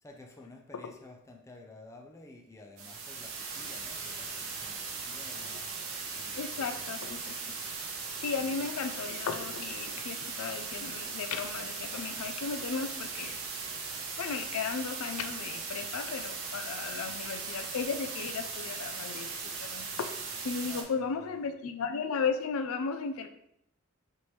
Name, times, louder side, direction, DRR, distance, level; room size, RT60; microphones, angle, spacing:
voice 1, 0.0-5.8 6.1-7.2 8.2-8.7 16.9-17.4 20.6-21.5, left 2 dB, 15° left, 1 dB, 0.4 m, -53 dB
sound 1, 2.8-20.8, right 4 dB, 85° right, 0.8 m, -38 dB
voice 2, 6.4-7.5 8.2-13.6 14.2-20.2 20.4-23.3, left 5 dB, 85° left, 9 dB, 0.4 m, -35 dB
4.3 x 3.1 x 3.2 m, 0.77 s
head